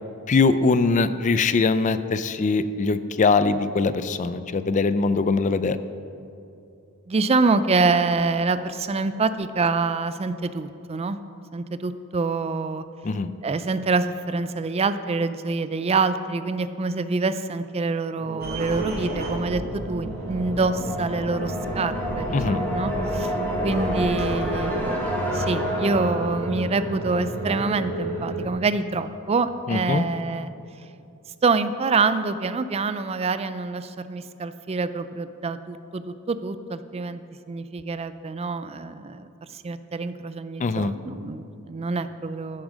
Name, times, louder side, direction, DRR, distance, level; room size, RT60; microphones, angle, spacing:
voice 1, 0.3-5.8 13.0-13.3 22.3-22.6 29.7-30.1 40.6-40.9, left 4 dB, 35° left, 13 dB, 0.4 m, -22 dB
voice 2, 7.1-11.2 11.5-12.8 13.4-23.3 23.6-30.5 31.4-37.2 37.5-39.3 39.5-42.6, right 3 dB, 30° right, 12 dB, 0.4 m, -26 dB
sound 1, 18.2-28.5, right 1 dB, 90° right, 1.3 m, -32 dB
sound 2, 18.4-24.9, right 1 dB, 50° right, 2.4 m, -36 dB
sound 3, 19.9-27.7, equal, 10° left, 1.9 m, -30 dB
14.5 x 7.3 x 6.2 m, 2.6 s
head